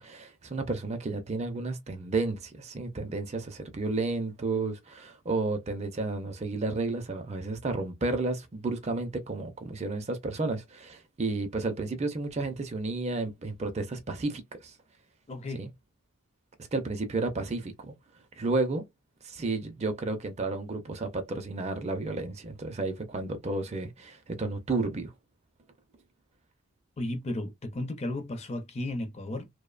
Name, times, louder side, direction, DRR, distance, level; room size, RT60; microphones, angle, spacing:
voice 1, 0.0-14.7 15.5-15.7 16.7-17.9 18.4-18.9 19.2-25.1, right 3 dB, 30° right, 0.4 m, -32 dB
voice 2, 15.3-15.6 27.0-29.5, left 1 dB, 30° left, 0.5 m, -34 dB
2.7 x 2.1 x 2.3 m
head